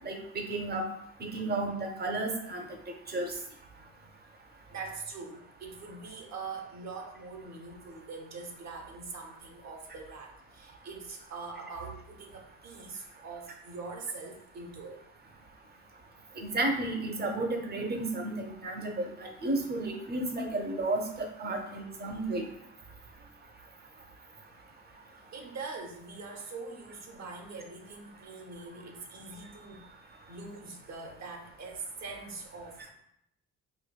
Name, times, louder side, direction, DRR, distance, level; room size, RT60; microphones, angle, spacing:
voice 1, 0.0-0.9 1.2-2.7 3.1-3.3 16.4-22.4, right 2 dB, 35° right, 4 dB, 0.7 m, -32 dB
voice 2, 3.7-4.1 4.7-15.0 23.2-23.4 25.3-32.9, right 4 dB, 60° right, 1 dB, 0.9 m, -43 dB
4.5 x 2.5 x 2.3 m, 0.75 s
cardioid pair, 90°, 30 cm